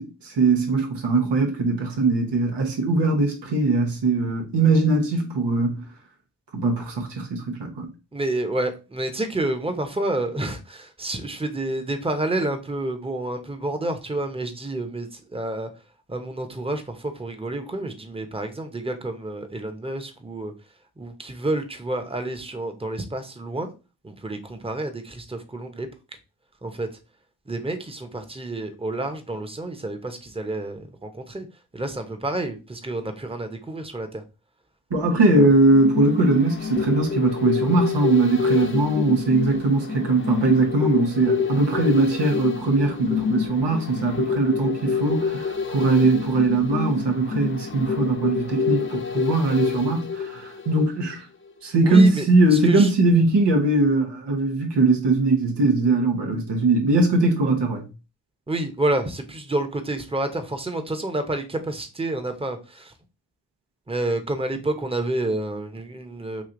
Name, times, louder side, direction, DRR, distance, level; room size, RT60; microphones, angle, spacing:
voice 1, 0.0-5.8 6.5-7.9 34.9-51.3 51.6-57.9, right 3 dB, 85° right, 1.0 m, -21 dB
voice 2, 8.1-15.7 16.1-20.5 21.0-23.7 24.0-25.9 26.6-26.9 27.5-31.5 31.7-34.2 51.8-52.9 58.5-62.9 63.9-66.4, right 2 dB, 15° right, 0.9 m, -29 dB
sound 1, 34.9-51.1 51.5-51.6, left 6 dB, 30° left, 0.7 m, -27 dB
3.2 x 2.7 x 3.8 m
cardioid pair, 40°, 41 cm